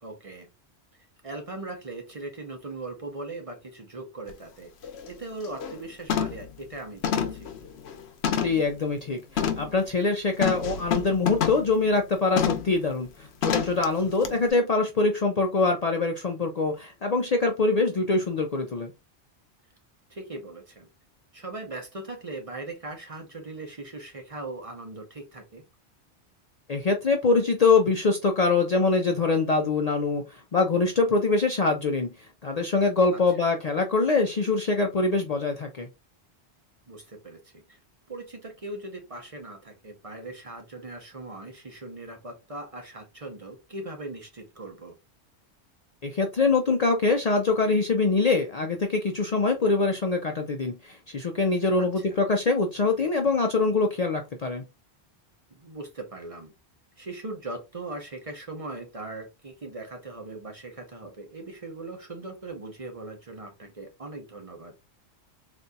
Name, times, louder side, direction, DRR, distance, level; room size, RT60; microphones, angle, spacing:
voice 1, 0.0-0.5 1.0-4.7 5.1-7.5 14.0-14.4 20.1-20.9 21.3-25.6 33.1-33.5 36.9-37.8 38.1-44.9 51.8-52.2 55.5-56.5 57.0-64.8, right 2 dB, 35° right, 0.7 m, -40 dB
sound 1, 4.3-4.4 4.8-5.1 5.4-5.8 6.1-6.5 7.0-8.7 9.4-9.7 10.4-11.7 12.4-12.7 13.4-13.8 14.2-14.3, left 8 dB, 75° left, 0.9 m, -28 dB
voice 2, 8.4-18.9 26.7-32.1 32.4-35.9 46.0-54.6, left 3 dB, 50° left, 0.5 m, -24 dB
4.0 x 2.5 x 2.2 m
omnidirectional pair, 1.1 m